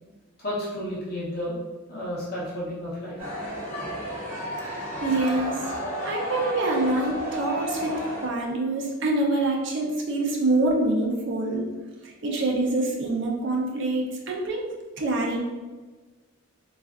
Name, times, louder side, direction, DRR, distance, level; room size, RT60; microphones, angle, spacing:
voice 1, 0.4-1.6 1.9-3.2, left 1 dB, 50° left, -7 dB, 0.8 m, -32 dB
sound 1, 3.2-8.3, equal, 15° right, 1.5 m, -32 dB
voice 2, 4.8-5.7 6.0-11.7 12.0-14.7 15.0-15.5, right 2 dB, 60° right, -1 dB, 0.5 m, -26 dB
3.3 x 2.4 x 2.4 m, 1.3 s
head